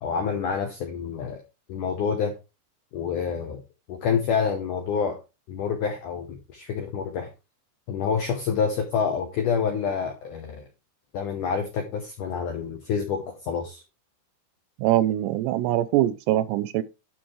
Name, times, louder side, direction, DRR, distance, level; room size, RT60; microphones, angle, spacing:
voice 1, 0.0-1.4 1.7-2.3 2.9-3.6 3.9-5.2 5.5-7.3 7.9-10.6 11.1-13.8, left 6 dB, 80° left, 1.8 m, -27 dB
voice 2, 14.8-16.8, right 14 dB, 80° right, 2.6 m, -23 dB
12.0 x 5.5 x 3.2 m
omnidirectional pair, 5.0 m